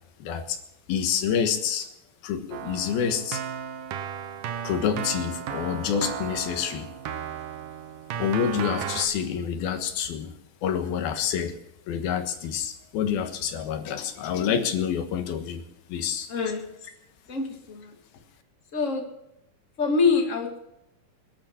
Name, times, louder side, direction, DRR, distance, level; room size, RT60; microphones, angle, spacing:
voice 1, 0.2-0.6 0.9-1.9 2.2-3.4 4.6-6.9 8.1-10.3 10.6-11.6 11.9-15.6 15.9-16.3, left 8 dB, 85° left, 6 dB, 3.3 m, -27 dB
Keyboard (musical), 2.5-9.1, right 8 dB, 70° right, 2.6 m, -34 dB
voice 2, 16.3-16.8 17.3-18.0 18.7-19.2 19.8-20.6, left 4 dB, 25° left, 2 dB, 2.0 m, -25 dB
21.5 x 11.5 x 4.5 m, 0.81 s
omnidirectional pair, 4.2 m